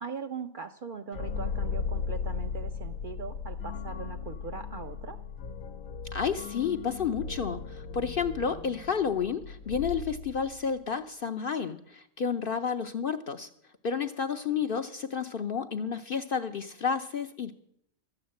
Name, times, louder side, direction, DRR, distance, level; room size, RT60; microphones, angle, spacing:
voice 1, 0.0-5.2, right 5 dB, 55° right, 6 dB, 0.6 m, -40 dB
sound 1, 1.1-10.8, left 5 dB, 85° left, 1.2 m, -37 dB
voice 2, 6.1-13.5 13.8-17.5, left 6 dB, 55° left, 7 dB, 0.6 m, -31 dB
13.0 x 8.7 x 7.6 m, 0.73 s
omnidirectional pair, 1.4 m